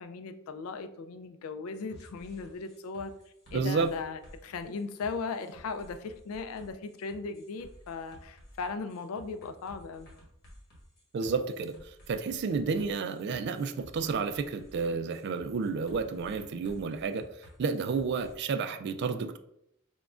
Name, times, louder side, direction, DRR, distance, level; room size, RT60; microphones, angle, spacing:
voice 1, 0.0-3.1 3.5-10.1, left 4 dB, 85° left, 10 dB, 0.4 m, -38 dB
sound 1, 1.9-18.3, equal, 50° left, 1.3 m, -54 dB
voice 2, 3.5-3.9 11.1-19.4, right 4 dB, 50° right, 9 dB, 0.3 m, -31 dB
5.9 x 2.2 x 2.4 m, 0.76 s
head